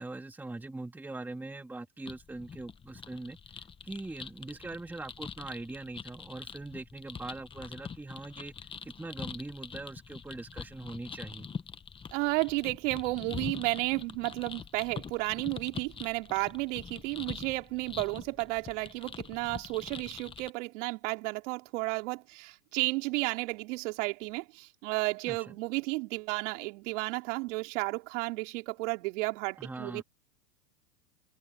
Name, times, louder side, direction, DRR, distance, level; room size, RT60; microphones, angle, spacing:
voice 1, 0.0-3.4 3.8-8.5 8.8-11.5 25.3-25.6 29.6-30.0, right 2 dB, 5° right, 1.8 m, -42 dB
sound 1, 2.1-20.5, left 6 dB, 10° left, 1.1 m, -44 dB
voice 2, 12.1-30.0, right 24 dB, 50° right, 3.1 m, -33 dB
hypercardioid pair, 135°, 46 cm